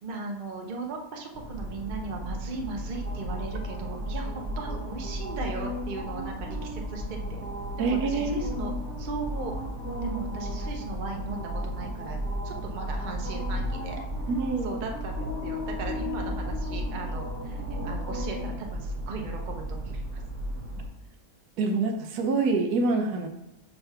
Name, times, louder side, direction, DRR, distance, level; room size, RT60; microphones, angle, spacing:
voice 1, 0.0-7.4 7.8-8.7 9.0-9.5 10.0-14.0 14.6-20.2, right 4 dB, 40° right, 2 dB, 0.7 m, -37 dB
sound 1, 1.3-20.9, equal, 10° right, 1.1 m, -34 dB
voice 2, 7.8-8.5 14.3-14.8 21.6-23.3, right 3 dB, 75° right, 4 dB, 1.3 m, -26 dB
5.7 x 3.4 x 5.6 m, 0.88 s
omnidirectional pair, 1.7 m